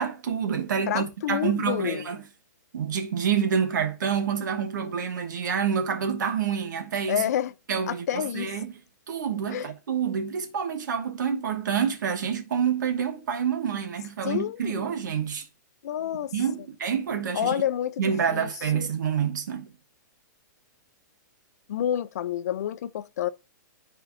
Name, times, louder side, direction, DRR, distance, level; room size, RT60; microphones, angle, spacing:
voice 1, 0.0-2.2 2.7-7.2 7.7-8.7 9.1-15.5 16.3-17.5 18.0-19.7, right 7 dB, 70° right, 1.1 m, -27 dB
voice 2, 0.9-2.1 7.1-7.5 7.9-8.5 9.5-9.7 14.2-14.9 15.8-16.3 17.3-18.0 18.3-18.5 18.7-18.9 21.7-23.3, left 10 dB, 55° left, 0.5 m, -28 dB
10.5 x 4.4 x 2.5 m
hypercardioid pair, 170°, 10 cm